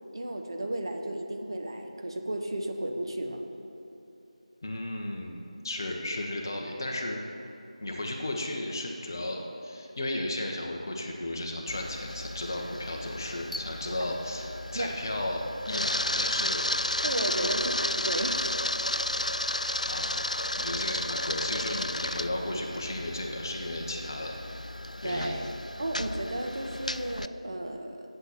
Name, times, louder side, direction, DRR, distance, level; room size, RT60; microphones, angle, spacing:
voice 1, 0.1-3.4 14.7-14.9 17.0-18.6 19.6-19.8 25.0-25.4 25.8-28.0, right 1 dB, 40° right, 3 dB, 0.8 m, -33 dB
voice 2, 4.6-7.2 7.8-16.7 17.4-17.5 19.9-24.4 25.0-25.4, left 1 dB, 30° left, 1 dB, 1.0 m, -34 dB
Camera, 11.7-27.3, left 1 dB, 80° left, 0.4 m, -33 dB
8.2 x 8.0 x 7.7 m, 2.8 s
figure-of-eight pair, 165°, 4 cm